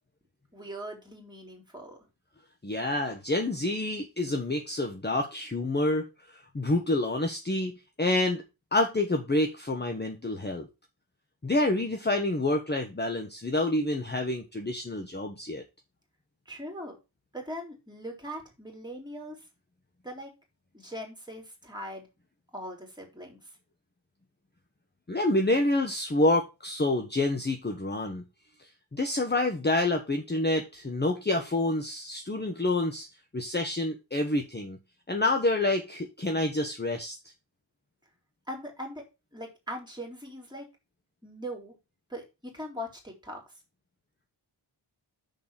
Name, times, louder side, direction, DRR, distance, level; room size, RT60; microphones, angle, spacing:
voice 1, 0.5-2.0 16.5-17.0 17.3-19.4 20.0-20.3 20.7-22.1 22.5-23.4 38.5-39.0 39.3-40.6 41.2-41.7 42.1-43.4, equal, 10° right, 1 dB, 3.7 m, -40 dB
voice 2, 2.6-8.4 8.7-10.7 11.4-15.6 25.1-28.2 28.9-33.1 33.3-34.8 35.1-37.2, left 2 dB, 20° left, 4 dB, 1.2 m, -28 dB
6.7 x 5.3 x 5.7 m, 0.26 s
wide cardioid pair, 100°, 48 cm